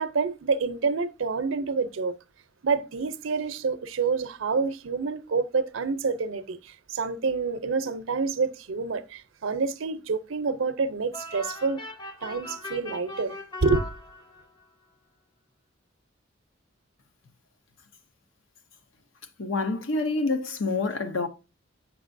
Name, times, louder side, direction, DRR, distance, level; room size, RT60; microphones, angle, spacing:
voice 1, 0.0-2.1 2.6-11.8 12.2-13.4 13.6-13.9, right 4 dB, 85° right, 0.6 m, -28 dB
sound 1, 11.1-14.6, left 2 dB, 25° left, 0.6 m, -39 dB
voice 2, 19.4-21.3, left 3 dB, 85° left, 0.9 m, -27 dB
7.8 x 5.9 x 2.5 m
head